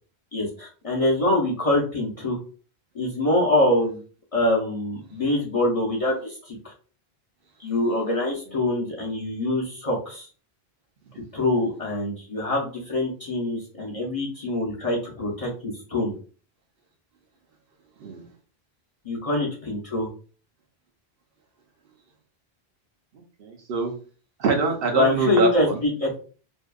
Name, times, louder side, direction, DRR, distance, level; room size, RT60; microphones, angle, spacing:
voice 1, 0.3-2.4 2.9-4.0 4.3-6.7 7.6-10.3 11.3-16.1 19.0-20.1 24.9-26.2, left 1 dB, 40° left, -3 dB, 0.6 m, -24 dB
voice 2, 23.4-23.9 24.4-25.8, right 3 dB, 70° right, 2 dB, 0.8 m, -24 dB
2.6 x 2.1 x 2.3 m, 0.39 s
omnidirectional pair, 1.1 m